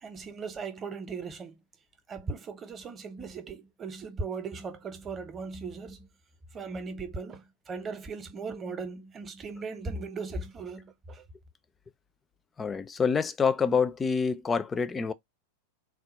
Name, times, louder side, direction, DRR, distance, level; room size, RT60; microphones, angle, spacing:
voice 1, 0.0-1.6 2.1-6.1 6.5-11.2, right 4 dB, 25° right, 0.7 m, -38 dB
voice 2, 12.6-15.1, left 5 dB, 15° left, 0.4 m, -27 dB
3.6 x 2.2 x 4.2 m
figure-of-eight pair, 90°, 0 cm